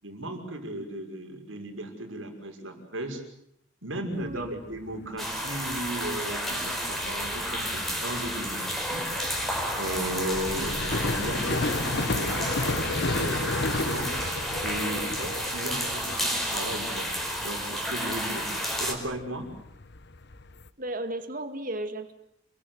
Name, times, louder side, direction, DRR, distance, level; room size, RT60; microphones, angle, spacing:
voice 1, 0.0-3.2 3.8-9.1 9.8-14.1 14.6-17.1 17.4-18.5 18.8-19.5, right 1 dB, 80° right, 4 dB, 6.0 m, -36 dB
sound 1, 4.1-20.7, left 3 dB, 55° left, 1.1 m, -34 dB
voice 2, 4.2-4.6 10.5-10.7 20.8-22.1, right 1 dB, 45° right, 8 dB, 2.3 m, -34 dB
sound 2, 5.2-18.9, equal, ahead, 4.9 m, -31 dB
29.5 x 22.0 x 8.0 m, 0.75 s
head